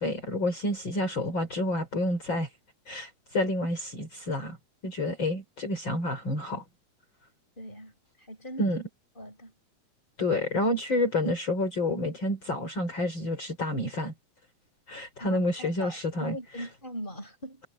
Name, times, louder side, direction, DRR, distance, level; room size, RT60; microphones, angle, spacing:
voice 1, 0.0-2.5 2.9-4.6 4.8-6.6 8.6-8.8 10.2-14.1 14.9-16.4, left 1 dB, 40° left, 5.4 m, -29 dB
voice 2, 7.6-7.9 8.2-8.6 9.2-9.5 15.2-17.6, equal, 15° left, 7.2 m, -41 dB
omnidirectional pair, 3.3 m